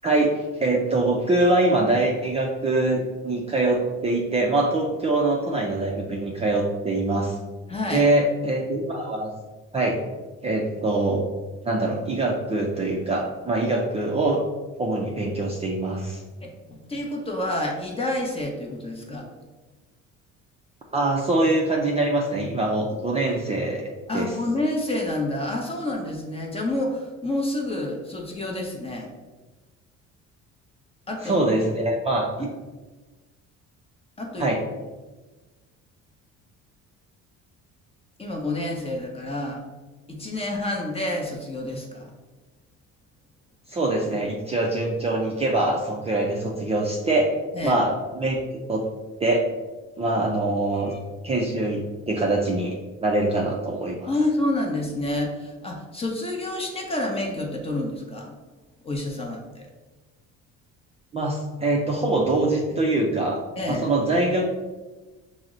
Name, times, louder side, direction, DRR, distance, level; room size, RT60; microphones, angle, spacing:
voice 1, 0.0-7.4 7.9-9.3 9.7-10.0 10.4-11.2 11.6-14.4 14.8-16.2 20.9-23.8 24.1-24.3 31.2-32.5 34.4-34.6 43.7-47.3 47.6-48.4 48.7-48.8 49.2-49.5 50.0-50.9 51.2-54.1 61.1-64.5, right 2 dB, 20° right, -1 dB, 0.4 m, -23 dB
voice 2, 7.7-8.1 16.4-19.3 24.1-29.1 31.1-31.5 32.4-32.5 34.2-34.5 38.2-39.6 40.1-42.1 47.5-47.8 50.7-51.0 54.1-58.3 58.8-59.7 63.6-63.8, left 1 dB, 20° left, 0 dB, 0.8 m, -28 dB
5.7 x 2.1 x 3.7 m, 1.2 s
cardioid pair, 125°, 31 cm